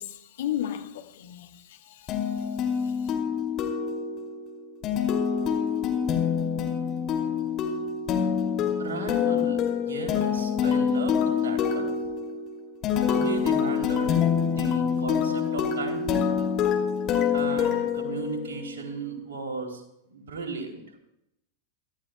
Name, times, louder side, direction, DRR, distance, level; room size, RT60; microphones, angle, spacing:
voice 1, 0.0-2.3 2.8-3.1, left 11 dB, 55° left, 1.3 m, -35 dB
sound 1, 2.1-18.8, left 7 dB, 35° left, 2.5 m, -26 dB
voice 2, 8.8-11.9 13.0-14.2 14.5-16.1 17.3-19.8 20.1-20.8, right 4 dB, 60° right, 3.0 m, -35 dB
24.0 x 14.5 x 2.2 m
figure-of-eight pair, 90°, 0 cm